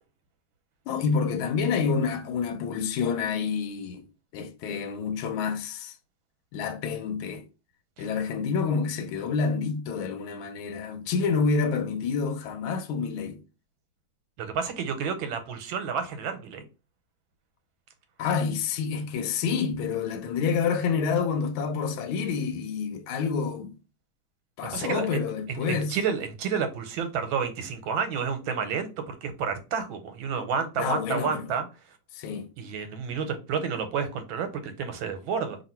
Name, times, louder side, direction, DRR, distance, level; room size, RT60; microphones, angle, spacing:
voice 1, 0.9-4.1 4.3-6.0 6.5-7.4 8.0-13.4 18.2-23.8 24.6-26.0 30.8-31.4 32.1-32.5, left 5 dB, 85° left, 1.4 m, -28 dB
voice 2, 14.4-16.7 24.7-25.2 25.5-31.6 32.6-35.6, right 6 dB, 80° right, 1.5 m, -30 dB
2.9 x 2.9 x 4.2 m
omnidirectional pair, 2.2 m